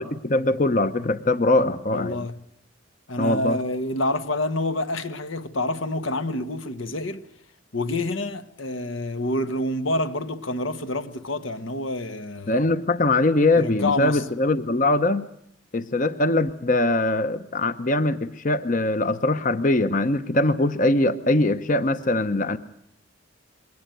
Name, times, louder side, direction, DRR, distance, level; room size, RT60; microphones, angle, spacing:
voice 1, 0.0-2.3 3.2-3.6 12.5-15.2 15.7-22.6, left 2 dB, 40° left, 0.8 m, -22 dB
voice 2, 1.9-2.3 3.1-7.3 7.7-12.6 13.5-14.2, left 1 dB, 85° left, 1.6 m, -27 dB
22.5 x 18.5 x 9.1 m
head